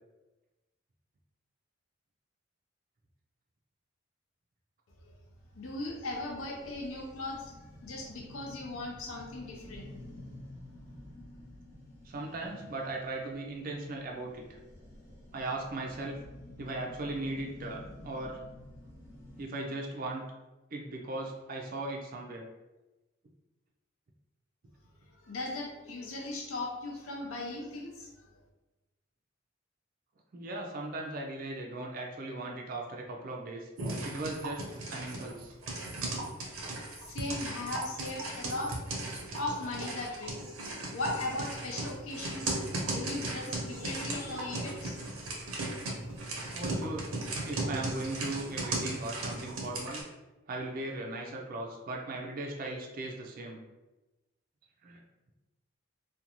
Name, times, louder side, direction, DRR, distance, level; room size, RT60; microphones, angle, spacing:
sound 1, 5.4-19.5, left 1 dB, 10° left, 0.6 m, -50 dB
voice 1, 5.5-7.5 7.8-9.9 25.2-28.1 36.9-38.7 39.4-40.4 40.9-42.6 42.9-45.2, left 2 dB, 80° left, -1 dB, 0.6 m, -38 dB
voice 2, 12.0-14.6 15.3-16.2 16.6-18.4 19.4-20.3 20.7-22.5 30.3-33.7 34.0-34.6 34.9-35.5 42.7-42.9 46.5-47.0 47.5-50.0 50.5-53.6 54.8-55.0, right 2 dB, 40° right, 0 dB, 0.3 m, -38 dB
sound 2, 33.8-50.0, right 2 dB, 90° right, 0.6 m, -37 dB
2.5 x 2.2 x 2.9 m, 1.1 s
head